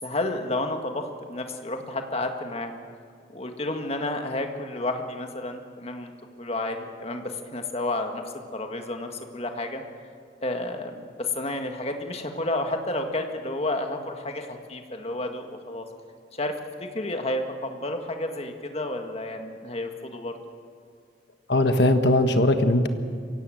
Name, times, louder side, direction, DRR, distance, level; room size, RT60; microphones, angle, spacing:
voice 1, 0.0-2.8 3.3-6.1 6.4-8.2 8.5-9.8 10.4-15.9 16.3-16.5 16.8-20.4, left 2 dB, 35° left, 4 dB, 1.8 m, -31 dB
voice 2, 21.5-22.9, left 1 dB, 60° left, 7 dB, 1.5 m, -20 dB
23.5 x 17.0 x 7.9 m, 2.2 s
head